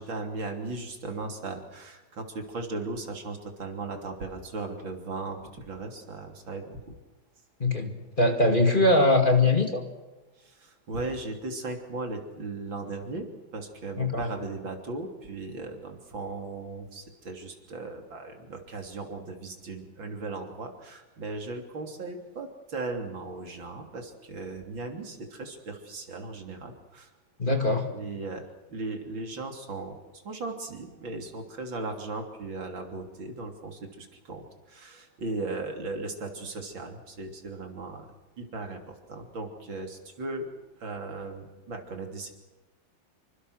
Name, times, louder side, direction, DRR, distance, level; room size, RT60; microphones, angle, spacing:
voice 1, 0.0-7.0 7.8-8.0 10.4-13.3 13.5-27.1 27.9-28.4 28.7-40.5 40.8-42.3, right 3 dB, 75° right, 4 dB, 3.8 m, -37 dB
voice 2, 7.6-7.9 8.2-9.8 14.0-14.3 27.4-27.9, left 2 dB, 25° left, 5 dB, 2.3 m, -22 dB
27.0 x 24.5 x 6.5 m, 1.1 s
omnidirectional pair, 2.1 m